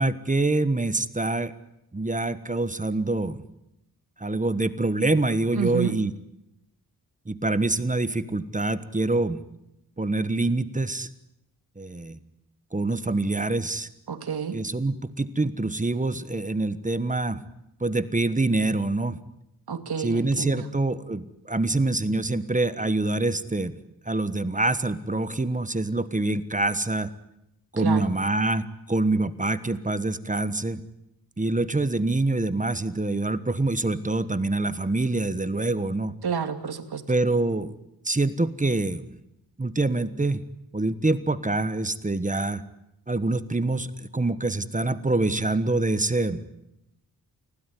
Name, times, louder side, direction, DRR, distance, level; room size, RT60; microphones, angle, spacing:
voice 1, 0.0-1.5 1.9-3.4 4.2-6.1 7.3-9.4 10.0-11.1 11.8-12.2 12.7-13.9 14.5-17.4 17.8-19.2 20.0-23.8 24.1-27.1 27.7-30.8 31.4-36.1 37.1-37.7 38.0-39.1 39.6-40.4 40.7-42.6 43.1-46.4, right 2 dB, 20° right, 13 dB, 1.3 m, -25 dB
voice 2, 5.5-6.0 14.1-14.6 19.7-20.7 27.8-28.1 36.2-37.0, right 7 dB, 75° right, 8 dB, 2.5 m, -29 dB
29.5 x 17.5 x 9.8 m, 0.85 s
wide cardioid pair, 155°, 38 cm